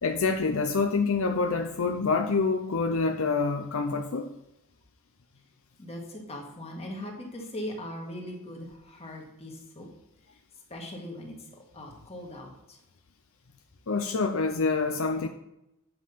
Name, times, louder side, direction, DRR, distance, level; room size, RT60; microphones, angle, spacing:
voice 1, 0.0-4.3 13.9-15.3, left 4 dB, 65° left, 5 dB, 0.6 m, -26 dB
voice 2, 5.8-9.9 10.7-12.8, left 1 dB, 30° left, 1 dB, 1.8 m, -40 dB
9.0 x 5.5 x 5.5 m, 0.86 s
head